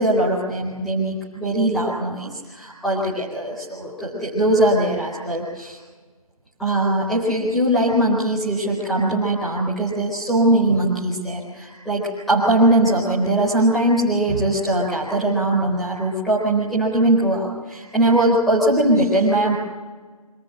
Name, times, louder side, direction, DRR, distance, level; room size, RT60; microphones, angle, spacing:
voice 1, 0.0-5.8 6.6-19.5, right 1 dB, ahead, -8 dB, 0.6 m, -20 dB
24.0 x 16.5 x 7.5 m, 1.4 s
figure-of-eight pair, 175°, 19 cm